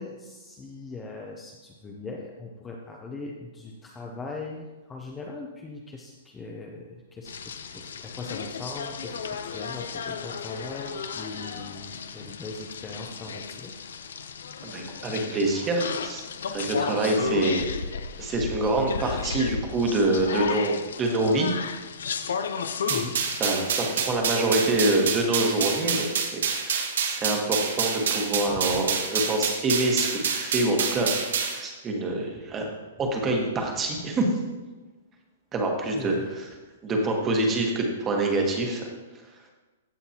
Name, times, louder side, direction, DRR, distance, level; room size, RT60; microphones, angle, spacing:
voice 1, 0.0-13.7 22.9-23.2 35.9-36.2, left 3 dB, 10° left, 0 dB, 0.6 m, -40 dB
sound 1, 7.3-23.5, left 6 dB, 85° left, 0.6 m, -34 dB
voice 2, 14.6-17.7 18.2-21.6 23.4-32.7 33.0-34.3 35.5-36.4 36.8-38.9, right 2 dB, 15° right, 1 dB, 1.3 m, -26 dB
sound 2, 22.9-31.6, right 6 dB, 75° right, 1.3 m, -27 dB
15.0 x 5.8 x 2.9 m, 1.2 s
hypercardioid pair, 170°, 0 cm